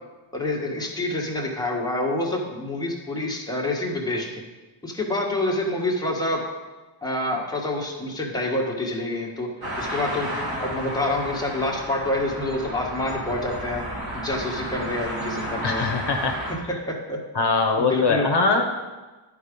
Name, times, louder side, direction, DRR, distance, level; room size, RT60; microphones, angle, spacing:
voice 1, 0.3-4.4 4.8-6.4 7.0-9.5 9.8-10.3 10.6-13.8 14.1-16.0 16.9-17.2 17.8-18.3, left 2 dB, 10° left, -2 dB, 1.5 m, -27 dB
sound 1, 9.6-16.5, equal, 45° right, 2.4 m, -32 dB
voice 2, 15.6-16.3 17.3-18.7, left 3 dB, 55° left, 3 dB, 0.9 m, -22 dB
11.0 x 4.8 x 5.3 m, 1.2 s
wide cardioid pair, 125°, 50 cm